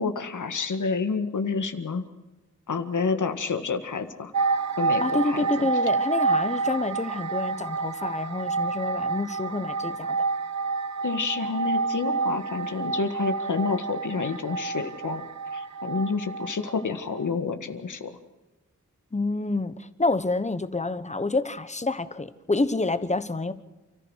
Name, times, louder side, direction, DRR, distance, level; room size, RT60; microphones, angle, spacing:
voice 1, 0.0-2.0 2.7-4.3 4.8-5.5 11.0-15.2 15.5-18.1, left 4 dB, 80° left, 8 dB, 1.9 m, -29 dB
sound 1, 4.3-16.8 17.1-17.3, right 4 dB, 65° right, 1.0 m, -28 dB
voice 2, 5.0-10.3 19.1-23.5, left 2 dB, 25° left, 13 dB, 1.2 m, -28 dB
29.5 x 14.5 x 6.5 m, 1.1 s
wide cardioid pair, 105°, 30 cm